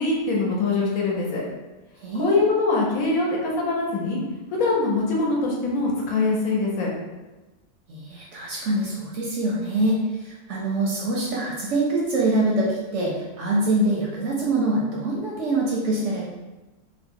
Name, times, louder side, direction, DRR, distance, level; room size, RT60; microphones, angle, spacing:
voice 1, 0.0-1.4 2.2-4.2 4.6-6.9, left 3 dB, 70° left, -3 dB, 1.1 m, -23 dB
voice 2, 2.0-2.5 7.9-16.2, right 2 dB, 65° right, -3 dB, 0.8 m, -24 dB
2.9 x 2.0 x 3.5 m, 1.1 s
omnidirectional pair, 1.6 m